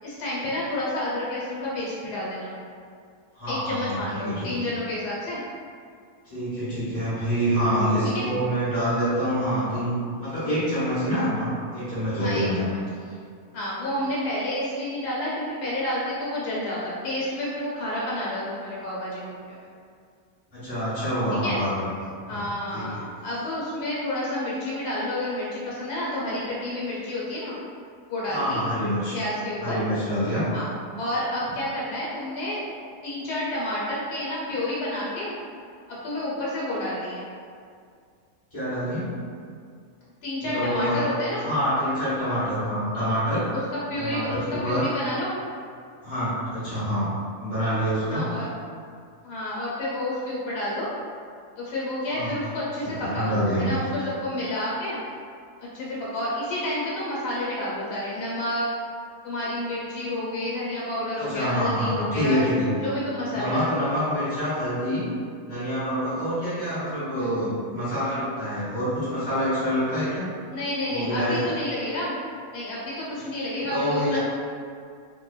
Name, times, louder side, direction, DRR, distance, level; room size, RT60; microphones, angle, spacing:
voice 1, 0.0-2.5 3.5-5.4 8.0-8.3 12.2-12.8 13.5-19.7 21.4-21.6 22.3-27.5 28.1-28.6 29.1-29.8 30.5-32.6 33.0-35.3 36.0-37.3 40.2-41.5 43.7-45.3 48.0-48.5 49.2-50.9 51.6-55.0 55.7-58.7 59.2-62.5 62.8-63.8 67.2-67.3 70.5-72.1 72.5-74.2, left 1 dB, 85° left, -7 dB, 1.3 m, -30 dB
voice 2, 3.3-4.6 6.2-12.7 20.5-21.8 22.3-22.9 28.3-29.2 29.6-30.4 38.5-39.1 40.4-41.0 41.4-43.5 43.9-44.8 46.0-47.1 47.4-48.3 52.1-52.3 52.8-53.8 61.2-62.7 63.3-65.1 65.5-70.3 70.9-71.5 73.6-74.2, equal, 10° left, -13 dB, 1.0 m, -26 dB
2.9 x 2.1 x 2.3 m, 2.2 s
omnidirectional pair, 1.7 m